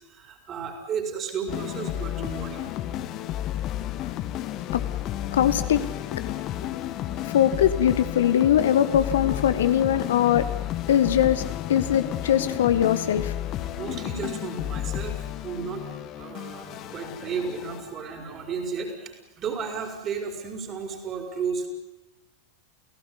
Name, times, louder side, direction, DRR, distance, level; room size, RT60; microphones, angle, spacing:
voice 1, 0.0-2.7 13.8-15.9 16.1-21.7, right 6 dB, 30° right, 5.5 m, -33 dB
sound 1, 1.5-18.2, left 12 dB, 35° left, 1.5 m, -32 dB
voice 2, 5.1-6.3 6.6-6.8 7.2-10.5 10.9-13.3, left 10 dB, 60° left, 1.4 m, -22 dB
29.5 x 17.5 x 9.9 m
figure-of-eight pair, 90°, 0 cm